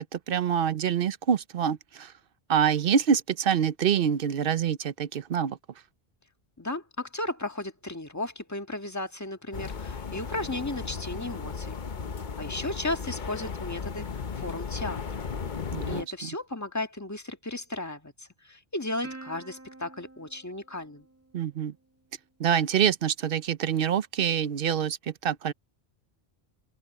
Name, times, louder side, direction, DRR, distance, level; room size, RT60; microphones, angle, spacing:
voice 1, 0.0-2.1 2.5-5.6 15.7-16.3 21.3-21.7 22.4-25.5, right 8 dB, 65° right, 0.9 m, -26 dB
voice 2, 6.6-11.8 12.4-15.2 15.9-21.1, left 2 dB, 15° left, 1.6 m, -35 dB
sound 1, 9.5-16.0, left 5 dB, 50° left, 1.0 m, -35 dB
Plucked string instrument, 19.0-21.8, right 3 dB, 15° right, 1.9 m, -47 dB
open air
omnidirectional pair, 1.0 m